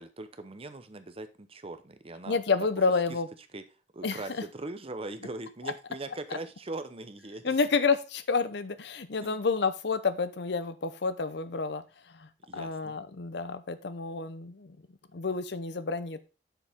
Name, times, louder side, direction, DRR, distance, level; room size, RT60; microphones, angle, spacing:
voice 1, 0.0-2.4 2.8-2.9 3.5-3.6 3.9-7.5 9.2-9.4 12.5-13.0, right 2 dB, 30° right, 10 dB, 0.8 m, -40 dB
voice 2, 2.3-3.3 4.0-4.4 7.4-11.8 12.1-14.8 15.1-16.2, left 4 dB, 65° left, 13 dB, 0.7 m, -29 dB
7.5 x 6.9 x 3.5 m, 0.32 s
head